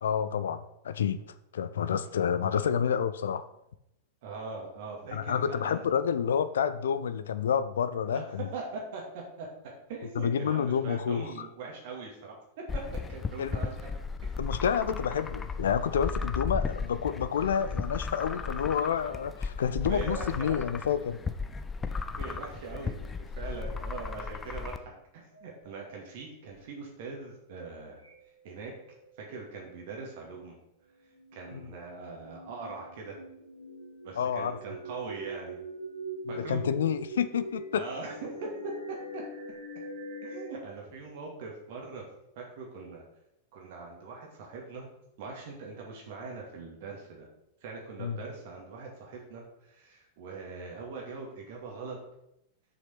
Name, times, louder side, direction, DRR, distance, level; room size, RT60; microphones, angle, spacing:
voice 1, 0.0-1.2 1.5-3.5 5.1-8.5 10.2-11.5 13.4-13.5 14.4-21.2 31.5-31.6 34.2-34.6 36.2-37.8 48.0-48.2, left 7 dB, 65° left, 13 dB, 0.6 m, -29 dB
voice 2, 4.2-5.9 8.1-9.5 9.9-12.4 12.7-12.8 13.1-13.9 14.2-14.4 15.1-15.2 19.9-20.7 22.1-28.0 28.4-28.7 29.2-30.6 31.3-33.2 34.0-35.6 36.3-36.6 37.7-39.2 40.2-42.0 42.4-43.0 43.5-44.9 45.2-47.3 47.6-52.0, right 4 dB, 50° right, -1 dB, 2.3 m, -41 dB
sound 1, 12.7-24.8, left 4 dB, 15° left, 0.6 m, -35 dB
sound 2, 25.3-25.9 26.5-26.6 28.0-28.4 28.7-29.6 30.9-40.5, right 2 dB, 85° left, 2.6 m, -43 dB
7.2 x 6.1 x 6.0 m, 0.81 s
figure-of-eight pair, 90°, 0 cm